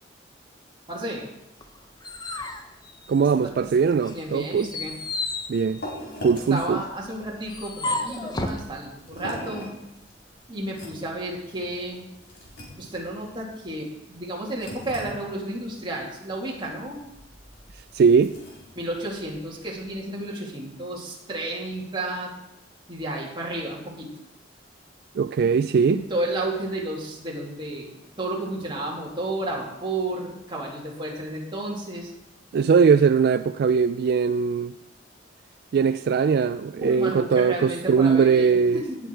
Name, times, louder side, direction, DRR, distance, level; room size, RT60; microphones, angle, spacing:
voice 1, 0.9-1.3 3.6-3.7 4.1-4.9 6.5-9.7 10.5-12.0 12.8-17.0 18.7-22.3 22.9-24.1 25.9-32.1 36.7-39.0, right 1 dB, 25° right, 2.5 m, -32 dB
sound 1, 1.6-3.6 4.0-8.7, left 2 dB, 20° left, 0.9 m, -33 dB
voice 2, 3.1-4.7 5.5-5.8 6.2-6.8 17.9-18.3 25.2-26.0 32.5-34.7 35.7-38.8, right 6 dB, 55° right, 0.3 m, -20 dB
sound 2, 5.0-20.0, equal, 60° left, 4.2 m, -43 dB
17.0 x 6.3 x 4.6 m
head